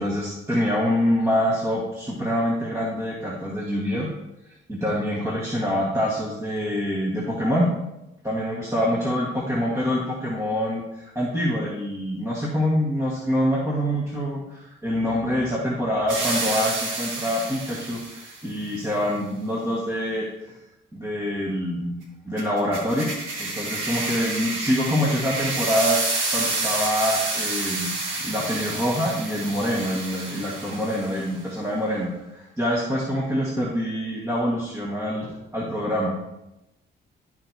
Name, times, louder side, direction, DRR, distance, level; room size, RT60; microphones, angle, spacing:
voice 1, 0.0-4.1 4.5-7.7 8.2-20.3 20.9-22.0 22.2-26.0 26.3-27.9 28.2-36.2, equal, 15° right, -5 dB, 1.6 m, -25 dB
sound 1, 16.1-18.4 22.4-31.3, right 2 dB, 85° right, 1.7 m, -29 dB
12.5 x 4.6 x 2.8 m, 0.92 s
cardioid pair, 90°, 20 cm